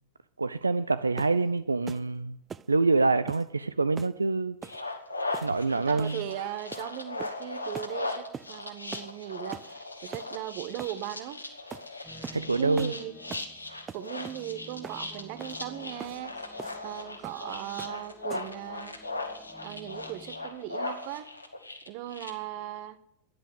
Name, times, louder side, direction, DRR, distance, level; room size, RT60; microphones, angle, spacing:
voice 1, 0.4-2.4 2.7-4.6 5.4-6.2 12.3-12.9, right 3 dB, 80° right, 0.5 m, -26 dB
sound 1, 1.2-1.4 1.9-2.1 2.5-2.7 3.3-3.5 4.0-4.2 4.6-4.8 5.3-5.6 6.0-6.2 6.7-6.9 7.2-7.5 7.7-7.9 8.3-8.5 8.9-9.1 9.5-9.7 10.1-10.3 10.8-11.0 11.7-11.9 12.2-12.4 12.8-13.0 13.3-13.5 13.9-14.4 14.8-15.0 15.4-15.6 16.0-16.2 16.6-16.8 17.2-17.4 17.8-18.0 18.3-18.6, right 6 dB, 20° right, 0.5 m, -42 dB
sound 2, 4.6-22.3, left 2 dB, 85° left, 2.1 m, -38 dB
voice 2, 5.7-11.4 12.5-13.1 13.9-16.5 16.8-19.0 19.6-21.3 21.9-23.0, right 13 dB, 45° right, 1.1 m, -38 dB
sound 3, 12.0-20.6, equal, ahead, 1.7 m, -52 dB
13.5 x 10.5 x 8.1 m
figure-of-eight pair, 90°, 0 cm